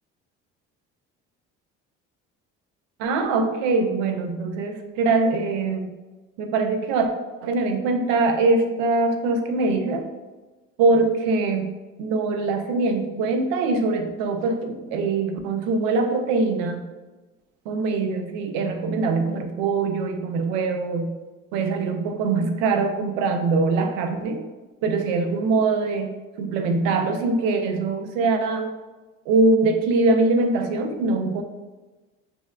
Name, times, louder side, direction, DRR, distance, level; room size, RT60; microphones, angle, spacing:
voice 1, 3.0-5.9 6.4-7.1 7.4-10.1 10.8-11.7 12.0-16.8 17.7-21.2 21.5-24.4 24.8-28.7 29.3-31.4, right 3 dB, 90° right, 6 dB, 0.6 m, -23 dB
6.1 x 3.3 x 2.2 m, 1.2 s
supercardioid pair, 80°, 31 cm